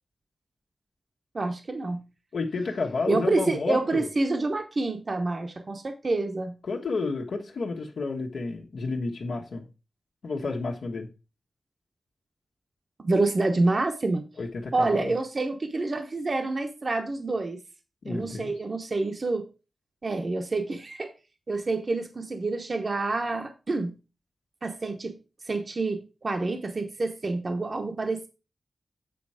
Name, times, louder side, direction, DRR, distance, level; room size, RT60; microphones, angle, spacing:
voice 1, 1.3-2.0 3.1-6.5 13.0-14.2 14.7-17.6 18.1-19.4 20.0-21.1 21.5-23.9 24.6-25.1 25.5-28.3, right 3 dB, 40° right, 1.0 m, -27 dB
voice 2, 2.3-4.1 6.6-9.7 10.2-11.1 14.4-15.1 18.0-18.5, left 3 dB, 85° left, 1.5 m, -31 dB
8.6 x 4.4 x 4.9 m
wide cardioid pair, 115°, 0 cm